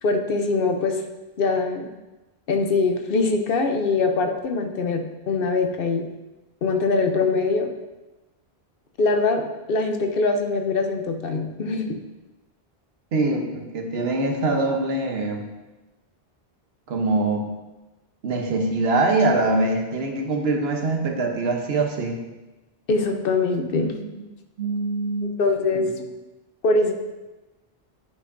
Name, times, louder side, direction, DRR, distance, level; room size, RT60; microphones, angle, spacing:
voice 1, 0.0-1.0 1.4-1.9 2.5-6.1 6.6-7.7 9.0-12.0 22.9-23.9 25.4-25.9 26.6-26.9, left 3 dB, 65° left, 4 dB, 0.9 m, -23 dB
voice 2, 13.1-15.5 16.9-17.5 18.2-22.2 24.0-24.1 24.6-25.4 25.7-25.9, right 2 dB, 75° right, 3 dB, 1.2 m, -23 dB
10.5 x 5.6 x 2.6 m, 1.1 s
omnidirectional pair, 1.1 m